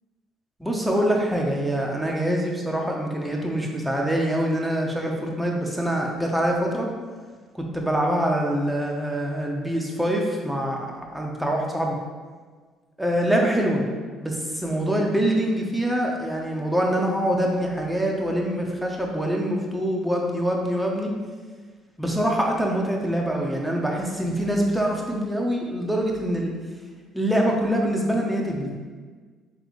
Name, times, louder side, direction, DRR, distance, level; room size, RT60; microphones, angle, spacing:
voice 1, 0.6-6.9 7.7-11.9 13.0-13.8 14.2-21.1 22.0-26.5 27.1-28.7, equal, 5° right, -1 dB, 0.8 m, -24 dB
3.9 x 3.3 x 3.1 m, 1.5 s
supercardioid pair, 70°, 0 cm